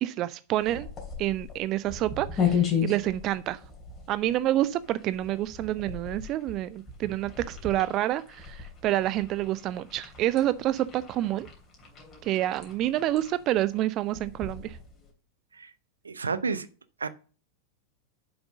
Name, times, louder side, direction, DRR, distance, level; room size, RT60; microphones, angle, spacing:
voice 1, 0.0-0.9 1.2-3.6 4.1-11.5 12.2-14.8, right 14 dB, 35° right, 16 dB, 0.4 m, -28 dB
sound 1, 0.6-15.1, left 7 dB, 25° left, 3.0 m, -36 dB
voice 2, 16.0-16.7 17.0-17.1, right 4 dB, 75° right, 14 dB, 0.7 m, -30 dB
7.4 x 6.0 x 5.1 m, 0.37 s
figure-of-eight pair, 90°, 0 cm